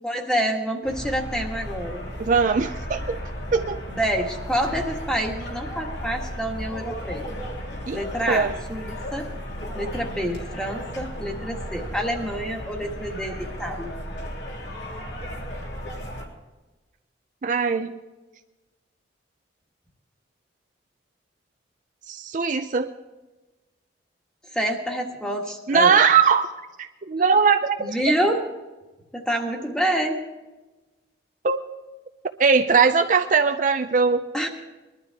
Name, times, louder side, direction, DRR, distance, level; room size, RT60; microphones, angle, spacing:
voice 1, 0.0-2.1 3.9-7.3 7.9-9.3 9.7-13.9 24.5-26.0 27.8-28.5 29.1-30.2 34.3-34.5, equal, 5° left, 2 dB, 1.5 m, -27 dB
sound 1, 0.8-16.3, equal, 65° left, 3.1 m, -35 dB
voice 2, 2.2-3.2 3.5-3.8 7.9-8.0 8.3-8.5 17.4-18.0 22.1-22.9 25.7-26.5 26.8-28.0 31.4-31.6 32.4-34.2, right 5 dB, 40° right, 7 dB, 0.5 m, -20 dB
21.0 x 12.0 x 3.5 m, 1.1 s
head